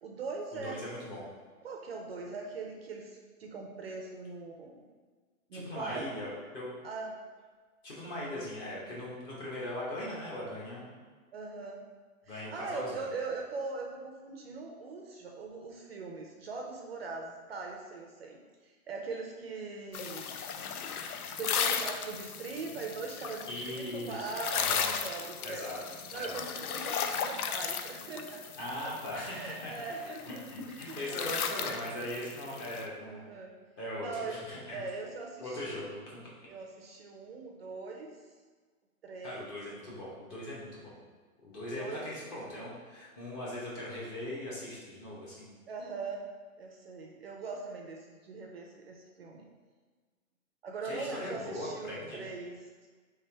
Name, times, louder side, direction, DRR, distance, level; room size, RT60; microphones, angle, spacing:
voice 1, 0.0-0.8 1.6-4.8 5.5-6.0 6.8-7.1 11.3-11.8 12.3-20.4 21.3-25.6 26.1-28.4 29.3-30.2 30.7-32.1 33.1-33.5 34.0-34.4 34.7-35.8 36.5-38.1 39.0-39.6 41.8-42.1 45.7-46.2 46.6-49.5 50.6-52.6, right 4 dB, 45° right, 1 dB, 0.5 m, -41 dB
voice 2, 0.5-1.3 5.5-6.7 7.8-10.9 12.3-13.1 23.5-24.3 24.6-24.9 25.4-25.8 26.1-26.4 28.6-29.8 30.5-33.3 33.8-34.8 35.4-36.2 39.2-40.9 41.4-45.5 50.8-52.3, left 1 dB, 15° left, -5 dB, 0.7 m, -39 dB
sound 1, 19.9-32.9, left 7 dB, 85° left, 0.5 m, -36 dB
3.4 x 3.4 x 4.4 m, 1.5 s
hypercardioid pair, 155°, 43 cm